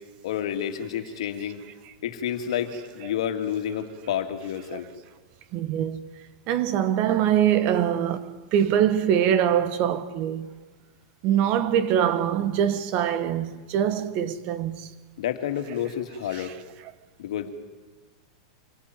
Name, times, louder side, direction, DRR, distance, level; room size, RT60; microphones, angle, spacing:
voice 1, 0.2-1.6 2.0-4.9 15.2-16.5 17.2-17.5, left 9 dB, 75° left, 2.4 m, -29 dB
voice 2, 5.5-6.0 6.5-10.5 11.2-14.8, right 9 dB, 45° right, 1.6 m, -23 dB
26.0 x 17.5 x 9.3 m
supercardioid pair, 140°, 3 cm